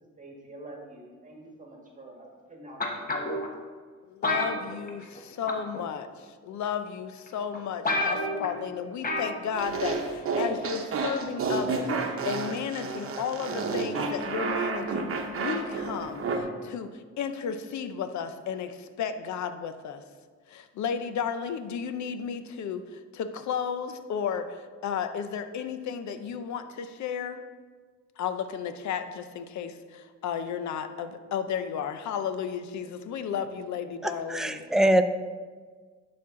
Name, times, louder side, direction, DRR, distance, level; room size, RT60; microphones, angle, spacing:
voice 1, 0.2-3.3, right 1 dB, 25° right, -1 dB, 1.6 m, -47 dB
sound 1, 2.8-3.5 4.2-5.2 5.5-5.8 6.6-6.7 7.3-7.4 7.5-7.6 7.8-8.5 9.0-9.4 9.7-9.8, left 2 dB, 30° left, 1.1 m, -28 dB
voice 2, 4.1-6.1 6.4-15.1 15.4-16.9 17.2-20.0 20.5-22.8 23.1-24.5 24.8-27.4 28.2-34.6, left 7 dB, 70° left, 10 dB, 0.7 m, -33 dB
sound 2, 9.5-16.4, right 4 dB, 45° right, 1.0 m, -30 dB
voice 3, 34.0-35.0, right 1 dB, ahead, 8 dB, 0.4 m, -23 dB
11.5 x 4.4 x 3.7 m, 1.5 s
cardioid pair, 90°, 30 cm